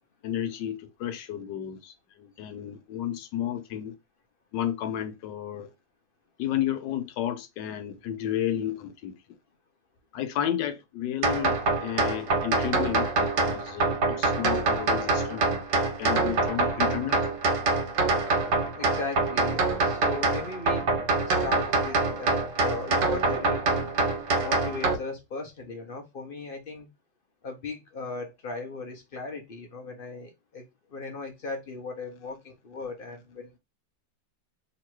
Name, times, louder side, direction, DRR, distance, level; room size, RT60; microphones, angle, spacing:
voice 1, 0.2-3.9 4.5-5.7 6.4-9.2 10.1-15.6 16.0-17.2, left 10 dB, 80° left, 1.3 m, -32 dB
sound 1, 11.2-25.0, right 3 dB, 75° right, 1.6 m, -25 dB
voice 2, 18.7-20.9 21.2-23.8 24.4-26.9 27.4-33.5, left 3 dB, 65° left, 0.5 m, -37 dB
3.0 x 2.9 x 4.5 m
omnidirectional pair, 1.9 m